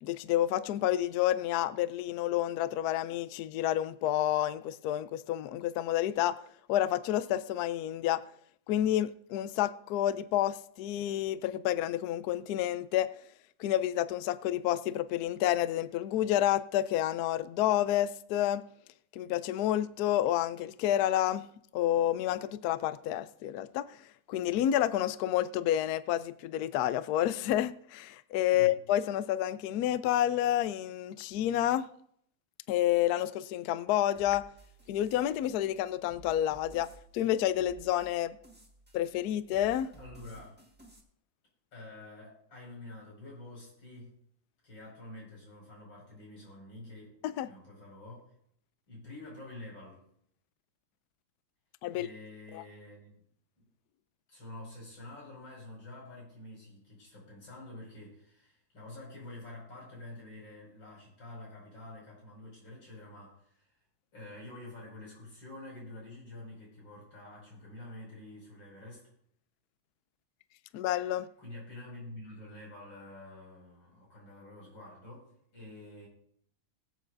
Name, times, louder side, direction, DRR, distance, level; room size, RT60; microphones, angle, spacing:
voice 1, 0.0-6.4 6.7-8.2 8.7-13.1 13.6-18.6 19.1-21.4 21.7-24.0 24.3-31.9 32.7-34.4 34.9-36.9 37.1-38.4 38.9-39.9 47.2-47.5 51.8-52.1 52.5-52.6 70.7-71.3, left 12 dB, 80° left, 0.8 m, -29 dB
sound 1, 34.1-41.0, right 3 dB, 5° right, 1.4 m, -56 dB
voice 2, 40.0-40.6 41.7-44.1 44.6-47.2 47.5-48.3 48.9-50.0 51.9-53.1 53.6-53.7 54.3-63.8 64.1-69.1 71.4-76.1, left 2 dB, 65° left, 6.3 m, -48 dB
21.0 x 8.2 x 2.6 m
omnidirectional pair, 2.2 m